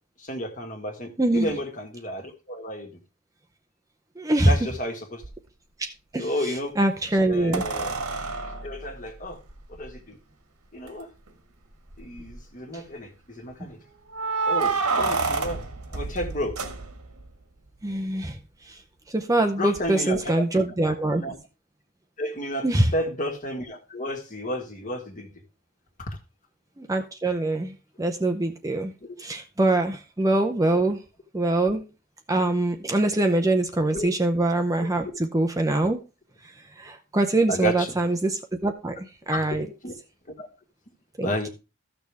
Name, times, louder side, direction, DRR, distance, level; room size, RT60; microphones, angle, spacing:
voice 1, 0.2-3.0 4.4-5.2 6.2-6.8 7.3-7.9 8.6-9.4 9.7-10.2 10.7-11.1 12.0-13.8 14.5-15.6 15.9-16.6 19.6-20.3 21.2-21.3 22.2-22.7 22.9-25.3 26.0-26.2 29.0-29.1 33.9-34.1 34.8-34.9 37.5-37.9 39.3-39.9 40.4-40.5 41.2-41.5, left 1 dB, 35° left, 1.8 m, -32 dB
voice 2, 1.2-1.5 4.2-4.6 5.8-7.6 12.7-12.8 13.6-13.7 17.8-18.8 19.1-21.2 22.6-22.9 26.8-28.9 29.2-31.0 31.3-31.8 32.3-36.0 36.4-39.7 41.2-41.3, right 2 dB, 15° right, 0.6 m, -24 dB
sound 1, 5.2-5.3 7.5-9.9 10.9-11.0 11.3-11.4 11.9-12.4 14.1-17.3 19.8-19.9, right 4 dB, 85° right, 1.7 m, -29 dB
14.0 x 6.5 x 3.5 m
head